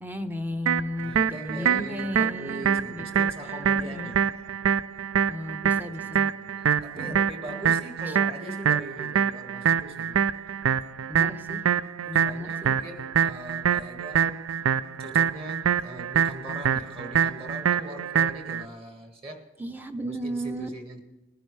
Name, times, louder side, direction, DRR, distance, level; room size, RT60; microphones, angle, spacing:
voice 1, 0.0-3.3 3.8-4.2 5.3-6.3 6.9-7.2 11.1-11.6 12.1-12.7 19.6-20.7, equal, 10° right, 7 dB, 0.7 m, -35 dB
sound 1, 0.7-18.6, right 8 dB, 85° right, 0.4 m, -25 dB
voice 2, 1.0-4.5 5.7-10.2 12.1-14.6 15.0-19.4 20.0-21.0, right 1 dB, 30° right, 4 dB, 1.8 m, -41 dB
20.5 x 11.5 x 3.3 m, 1.1 s
head